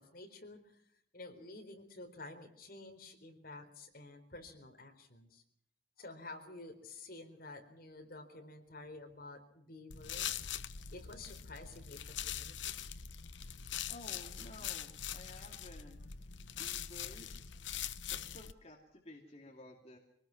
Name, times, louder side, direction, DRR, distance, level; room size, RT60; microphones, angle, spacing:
voice 1, 0.0-5.4 6.0-10.6 10.9-12.8, left 2 dB, 50° left, 5 dB, 4.2 m, -51 dB
sound 1, 9.9-18.5, left 9 dB, 85° left, 1.0 m, -43 dB
voice 2, 13.9-16.0 16.6-17.5 18.1-20.0, left 1 dB, 35° left, 1 dB, 2.6 m, -53 dB
25.0 x 19.5 x 5.9 m, 0.71 s
head